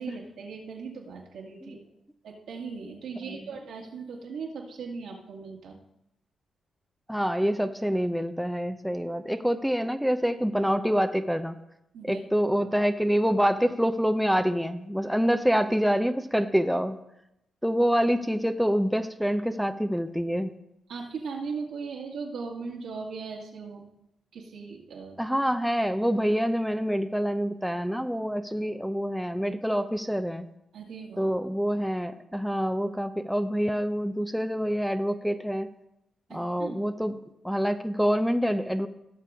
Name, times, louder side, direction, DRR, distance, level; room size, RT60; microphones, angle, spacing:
voice 1, 0.0-1.9 2.2-5.8 11.9-12.2 20.9-23.8 24.3-25.2 30.7-31.3 36.3-36.9, right 5 dB, 75° right, -1 dB, 2.0 m, -38 dB
voice 2, 7.1-11.6 12.0-17.0 17.6-20.5 25.2-30.5 31.2-35.7 36.3-37.1 37.4-38.9, equal, ahead, 8 dB, 0.7 m, -26 dB
16.5 x 6.7 x 3.6 m, 0.84 s
hypercardioid pair, 40°, 0 cm